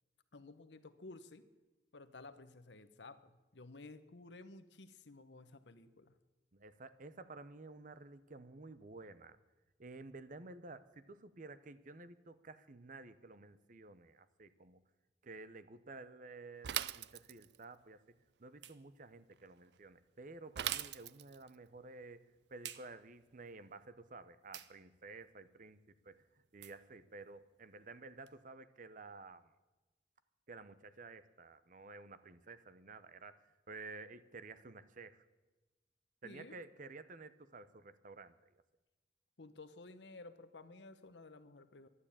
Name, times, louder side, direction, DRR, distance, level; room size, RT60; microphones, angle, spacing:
voice 1, 0.3-1.5 1.9-6.2 36.2-36.6 39.4-41.9, left 3 dB, 75° left, 11 dB, 1.0 m, -54 dB
voice 2, 6.5-9.4 9.8-14.8 15.2-18.0 18.4-25.8 26.0-26.2 26.5-29.5 30.5-35.2 36.2-38.5, right 3 dB, 50° right, 13 dB, 0.8 m, -52 dB
Bicycle / Mechanisms, 16.6-17.6 20.6-21.5, right 12 dB, 65° right, 0.4 m, -39 dB
sound 1, 17.3-28.4, right 11 dB, 85° right, 0.8 m, -56 dB
12.5 x 11.0 x 8.6 m, 1.2 s
head